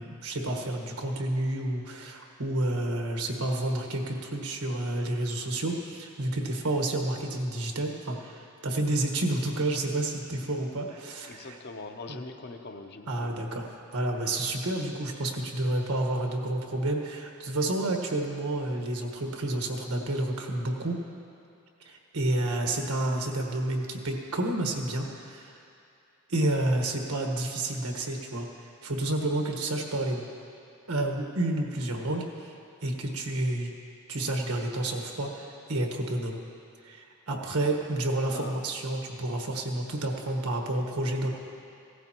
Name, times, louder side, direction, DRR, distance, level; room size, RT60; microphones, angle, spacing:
voice 1, 0.0-11.5 12.1-12.2 13.1-13.6 13.9-21.0 21.8-25.6 26.3-28.5 28.8-30.2 30.9-32.5 32.8-33.7 34.1-36.4 36.8-41.3, right 1 dB, 85° right, 2 dB, 1.4 m, -30 dB
voice 2, 11.3-13.4 23.5-23.6 38.3-38.6, left 3 dB, 45° left, 5 dB, 0.7 m, -42 dB
17.0 x 14.5 x 3.0 m, 2.5 s
head